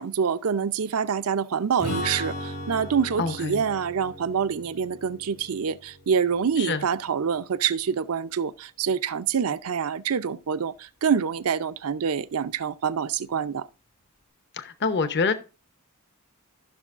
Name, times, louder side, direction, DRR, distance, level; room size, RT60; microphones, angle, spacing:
voice 1, 0.0-13.7, right 6 dB, 70° right, 0.5 m, -26 dB
Strum, 1.8-7.4, left 1 dB, 90° left, 5.6 m, -37 dB
voice 2, 3.2-3.6 6.6-6.8 14.5-15.3, left 4 dB, 50° left, 0.8 m, -26 dB
14.5 x 6.1 x 2.5 m
head